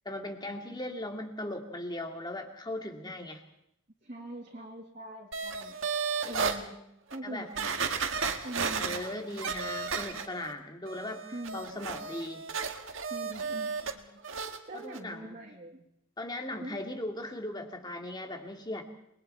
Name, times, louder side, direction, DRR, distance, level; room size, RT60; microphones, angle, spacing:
voice 1, 0.1-3.4 7.2-7.5 8.8-11.2 11.5-12.4 14.7-15.4 16.2-18.8, left 1 dB, 20° left, 4 dB, 2.2 m, -38 dB
voice 2, 4.0-5.8 6.2-6.8 7.1-7.7 8.4-9.0 11.3-11.8 13.1-14.2 14.7-15.8 16.6-16.8, right 1 dB, 35° right, -1 dB, 2.4 m, -43 dB
sound 1, 5.3-6.6 7.1-7.2 7.6-10.5 10.9-13.9 14.2-14.6 14.9-15.0, right 5 dB, 65° right, 1.7 m, -33 dB
29.0 x 22.0 x 4.4 m, 0.79 s
head